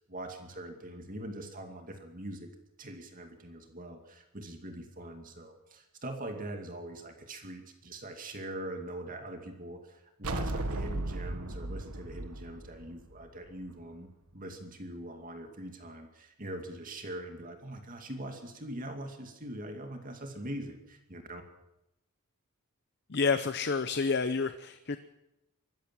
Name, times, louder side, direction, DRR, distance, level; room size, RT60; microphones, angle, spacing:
voice 1, 0.1-2.5 2.8-21.4, right 1 dB, 40° right, 5 dB, 2.4 m, -42 dB
sound 1, 10.2-13.7, right 2 dB, 80° right, 1.5 m, -36 dB
voice 2, 23.1-25.0, left 4 dB, 50° left, 11 dB, 0.8 m, -29 dB
23.5 x 14.5 x 7.6 m, 0.92 s
head